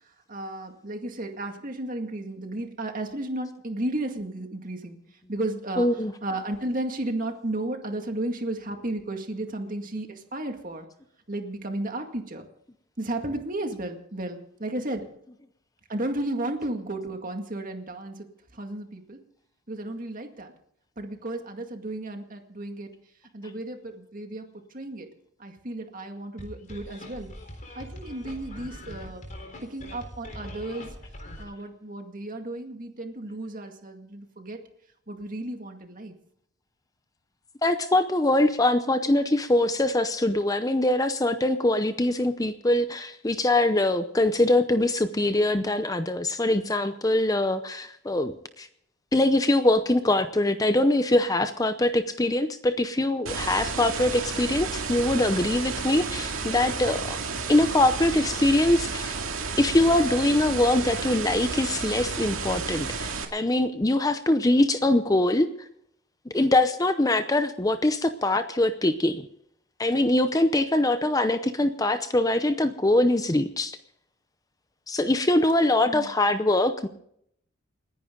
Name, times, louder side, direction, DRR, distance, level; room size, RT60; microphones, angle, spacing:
voice 1, 0.3-5.0 5.3-5.9 6.2-10.9 11.3-12.5 13.0-15.1 15.9-18.3 18.5-19.2 19.7-20.5 21.0-22.9 23.3-25.1 25.4-27.3 27.8-29.2 29.6-30.9 31.4-34.6 35.1-36.1 75.8-76.1, right 1 dB, 40° right, 5 dB, 2.1 m, -33 dB
voice 2, 5.8-6.1 37.6-48.7 49.1-57.2 57.5-59.2 59.6-65.5 66.3-69.2 69.8-73.8 74.9-76.9, left 1 dB, 15° left, 10 dB, 0.6 m, -23 dB
sound 1, 26.4-31.4, left 1 dB, 40° left, 3.9 m, -42 dB
sound 2, 53.3-63.3, right 4 dB, 80° right, 2.3 m, -32 dB
29.5 x 10.5 x 3.8 m, 0.71 s
head